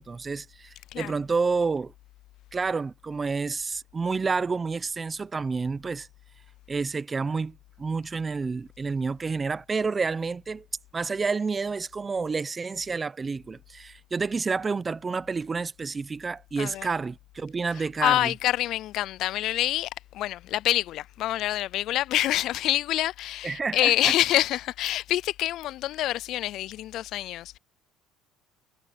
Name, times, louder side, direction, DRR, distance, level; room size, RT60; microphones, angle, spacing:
voice 1, 0.0-1.9 2.5-6.1 6.7-10.6 10.9-18.3 23.4-24.1, right 4 dB, 25° right, 0.8 m, -29 dB
voice 2, 16.6-16.9 17.7-27.6, left 14 dB, 60° left, 0.4 m, -26 dB
cardioid pair, 110°, 0 cm